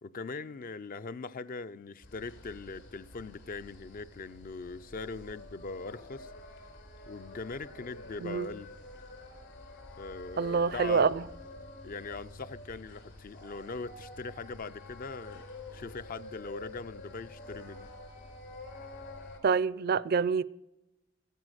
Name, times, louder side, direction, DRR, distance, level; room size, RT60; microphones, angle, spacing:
voice 1, 0.0-6.3 7.1-8.7 10.0-11.1 11.8-15.4 15.7-17.9, left 4 dB, 45° left, 0.4 m, -41 dB
sound 1, 2.0-19.4, left 2 dB, 60° left, 4.0 m, -48 dB
voice 2, 10.4-11.2 19.4-20.4, right 5 dB, 50° right, 0.4 m, -26 dB
15.5 x 9.2 x 6.4 m
head